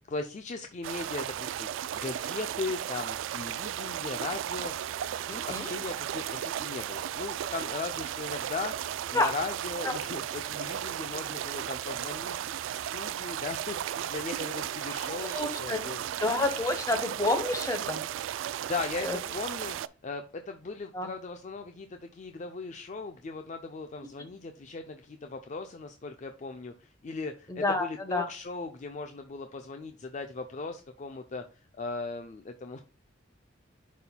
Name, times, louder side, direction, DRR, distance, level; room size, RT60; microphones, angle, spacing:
voice 1, 0.1-12.4 12.7-16.0 18.6-19.8 20.0-31.4 31.8-32.8, left 4 dB, 40° left, 6 dB, 0.4 m, -38 dB
sound 1, 0.8-19.9, right 10 dB, 85° right, 0.3 m, -35 dB
voice 2, 15.2-15.8 16.2-18.0 19.0-19.2 20.9-21.1 27.5-28.3, left 2 dB, 20° left, 6 dB, 1.0 m, -29 dB
10.5 x 4.2 x 2.2 m, 0.33 s
head